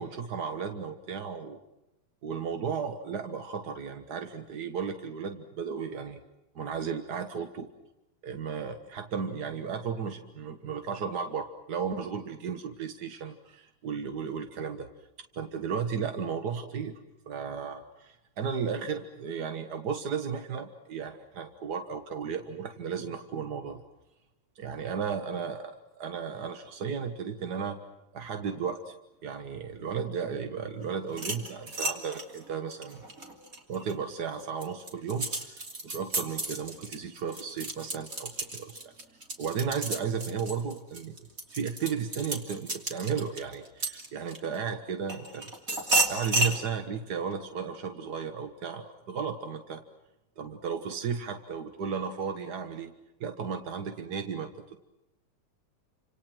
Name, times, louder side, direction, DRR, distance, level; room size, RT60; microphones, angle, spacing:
voice 1, 0.0-1.6 2.2-6.2 6.5-7.7 8.2-14.9 15.3-16.9 17.3-23.8 24.5-27.8 28.1-29.0 29.2-33.0 33.7-38.9 39.4-41.2 41.5-45.5 46.1-49.8 50.4-52.9 53.2-54.8, right 6 dB, 50° right, 7 dB, 1.3 m, -34 dB
sound 1, 31.1-33.9 34.4-44.6 45.1-46.6, right 2 dB, 30° right, 3.3 m, -32 dB
29.5 x 27.0 x 6.2 m, 0.94 s
omnidirectional pair, 3.3 m